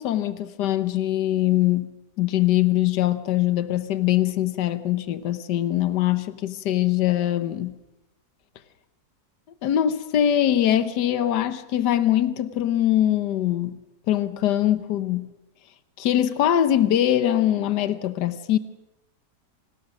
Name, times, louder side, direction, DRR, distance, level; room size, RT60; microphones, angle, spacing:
voice 1, 0.0-1.9 2.2-7.8 9.6-13.8 14.1-15.3 16.0-18.6, left 12 dB, 75° left, 1.5 m, -22 dB
25.5 x 19.0 x 6.2 m
omnidirectional pair, 1.8 m